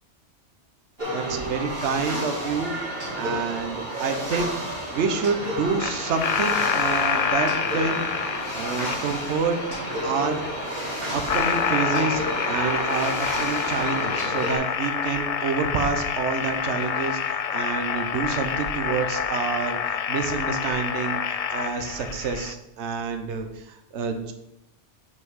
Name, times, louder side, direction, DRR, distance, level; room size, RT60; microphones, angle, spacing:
sound 1, 1.0-14.6, right 1 dB, 55° right, 3.6 m, -31 dB
voice 1, 1.1-2.7 3.1-4.5 4.9-8.1 8.6-9.6 10.0-10.4 11.1-24.3, right 5 dB, 70° right, 6 dB, 1.1 m, -28 dB
sound 2, 5.8-22.5, left 7 dB, 75° left, 0.3 m, -28 dB
5.9 x 5.5 x 6.2 m, 0.88 s
omnidirectional pair, 1.2 m